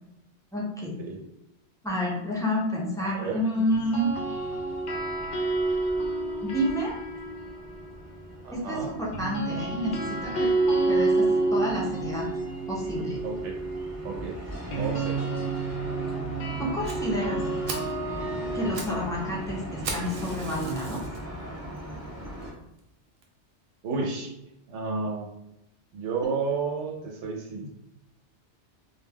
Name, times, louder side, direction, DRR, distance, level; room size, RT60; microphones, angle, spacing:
voice 1, 0.5-1.0 1.8-4.1 6.4-7.0 8.5-10.5 10.9-11.3 11.5-12.3 12.7-13.2 16.6-17.4 18.5-21.0 26.2-26.3, equal, 5° left, -5 dB, 0.3 m, -29 dB
voice 2, 3.0-3.4 8.4-8.9 13.2-13.6 14.0-14.4 14.8-15.2 23.8-24.3 24.7-25.3 25.9-27.7, right 4 dB, 90° right, 1 dB, 0.9 m, -31 dB
sound 1, 3.7-7.9 9.1-21.0, right 3 dB, 55° left, 0.5 m, -30 dB
sound 2, 4.0-22.5, equal, 15° right, 0.9 m, -41 dB
Fire, 16.8-17.0 17.4-17.5 17.7-18.0 18.5-19.0 19.2-19.3 19.8-21.2 21.8-21.9 22.4-22.5 22.8-22.9 23.2-23.3, right 3 dB, 60° right, 0.7 m, -37 dB
2.3 x 2.2 x 3.4 m, 0.85 s
omnidirectional pair, 1.2 m